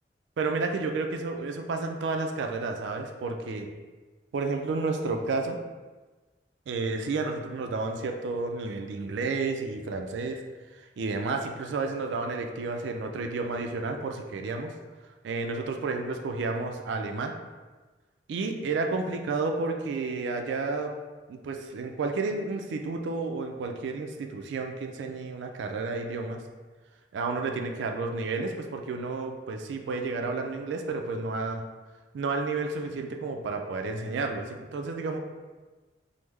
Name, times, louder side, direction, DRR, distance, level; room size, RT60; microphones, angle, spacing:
voice 1, 0.4-3.7 4.3-5.6 6.7-10.4 10.8-14.7 15.2-17.3 18.3-20.9 21.3-26.4 27.1-31.6 32.1-35.2, right 3 dB, 85° right, 4 dB, 0.3 m, -31 dB
3.1 x 2.0 x 3.4 m, 1.3 s
head